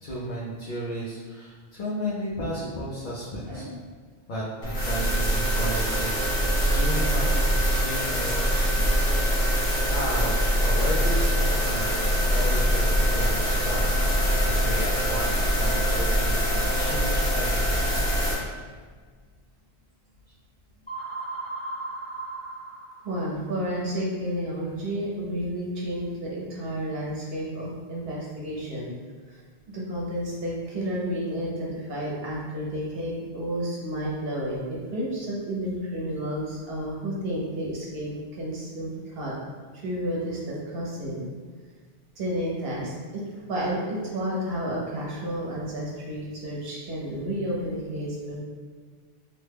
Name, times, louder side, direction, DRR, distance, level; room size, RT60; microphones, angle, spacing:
voice 1, 0.0-3.7 4.3-9.2 9.9-11.9 12.3-14.0 14.4-17.8, equal, 55° left, -8 dB, 0.7 m, -34 dB
sound 1, 4.6-18.3, equal, 85° left, 1.3 m, -23 dB
sound 2, 20.9-23.5, right 3 dB, 10° left, 0.6 m, -36 dB
voice 2, 23.0-28.9 29.3-29.4 29.7-39.3 39.7-41.2 42.2-43.2 43.5-48.4, equal, 65° right, -4 dB, 1.0 m, -31 dB
2.9 x 2.2 x 3.3 m, 1.5 s
omnidirectional pair, 1.1 m